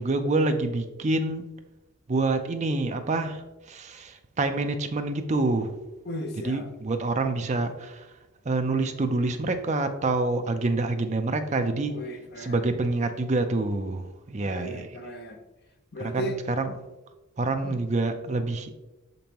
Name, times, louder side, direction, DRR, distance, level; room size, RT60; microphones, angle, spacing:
voice 1, 0.0-1.5 2.1-3.4 3.7-5.7 6.4-8.1 8.4-12.0 12.4-15.0 16.0-16.7 17.4-18.7, right 2 dB, 30° right, 7 dB, 0.5 m, -27 dB
voice 2, 6.0-6.7 11.9-12.7 14.4-15.4 15.9-16.4 17.5-17.8, equal, 45° left, 5 dB, 0.7 m, -36 dB
6.2 x 5.3 x 2.9 m, 1.1 s
head